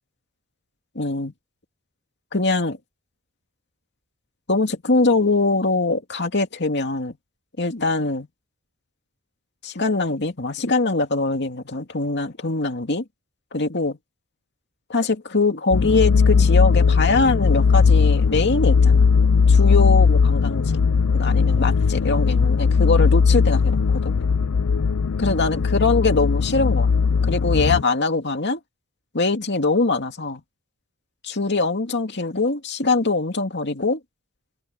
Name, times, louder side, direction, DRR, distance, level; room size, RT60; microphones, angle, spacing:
voice 1, 1.0-1.3 2.3-2.8 4.5-7.2 7.6-8.3 9.6-13.0 13.5-14.0 14.9-19.1 19.5-20.8 21.1-24.1 25.2-26.9 27.2-28.6 29.1-30.4 31.2-34.0, left 3 dB, 50° left, 2.4 m, -22 dB
sound 1, 15.7-27.8, left 5 dB, 70° left, 0.5 m, -18 dB
head